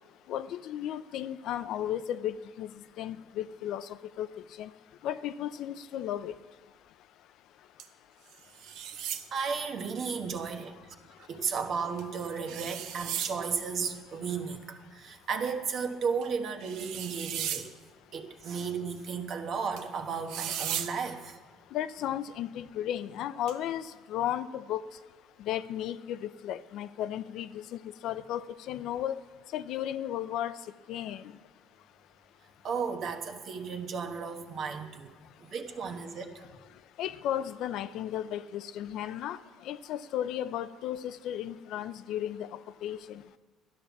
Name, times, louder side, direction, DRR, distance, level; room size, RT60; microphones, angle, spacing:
voice 1, 0.3-2.7 3.0-3.9 4.2-4.3 4.6-4.7 5.0-6.3 21.7-24.8 25.4-29.2 29.5-30.6 30.9-31.3 37.0-39.4 39.6-43.2, left 11 dB, 65° left, 13 dB, 0.5 m, -34 dB
sound 1, 7.8-7.9 8.3-9.3 12.0-12.1 12.5-13.4 16.2-16.3 16.6-17.7 19.8-19.9 20.3-20.9 23.5-23.6, right 9 dB, 70° right, 0.9 m, -36 dB
voice 2, 9.3-10.8 11.2-17.7 18.1-21.4 32.6-35.1 35.4-36.4, right 5 dB, 45° right, 6 dB, 1.2 m, -34 dB
13.0 x 11.0 x 7.1 m, 1.4 s
cardioid pair, 155°, 0 cm